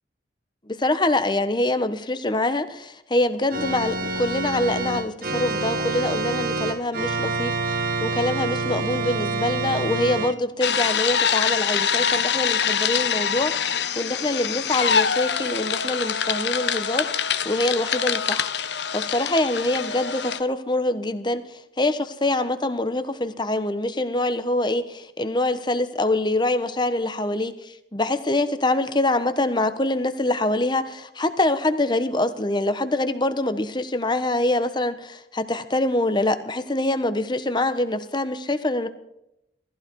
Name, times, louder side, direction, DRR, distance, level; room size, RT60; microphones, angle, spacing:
voice 1, 0.7-17.1 17.4-18.5 18.9-27.5 27.9-38.9, left 2 dB, 25° left, 1.1 m, -25 dB
Organ, 3.5-10.3, right 3 dB, 55° right, 1.4 m, -27 dB
sound 1, 10.6-20.4, left 7 dB, 75° left, 0.9 m, -24 dB
19.0 x 15.0 x 4.7 m
head